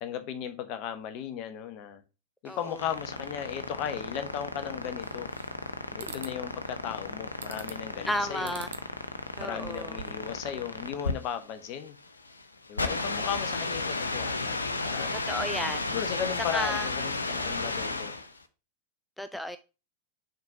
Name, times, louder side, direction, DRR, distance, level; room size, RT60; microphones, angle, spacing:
voice 1, 0.0-2.0 2.4-5.3 6.0-8.6 9.4-12.0 12.7-15.1 15.9-18.1, left 9 dB, 40° left, 1.1 m, -36 dB
voice 2, 2.4-2.8 6.0-6.1 8.0-8.7 9.4-10.0 15.1-15.8 16.5-16.9 19.2-19.6, equal, 5° left, 0.4 m, -33 dB
sound 1, 2.5-18.4, left 3 dB, 75° left, 0.8 m, -34 dB
sound 2, 5.0-5.7 6.0-6.4 7.4-7.9 8.4-8.9 9.3-10.3, right 7 dB, 65° right, 0.9 m, -45 dB
6.5 x 4.2 x 4.8 m
figure-of-eight pair, 90°, 0 cm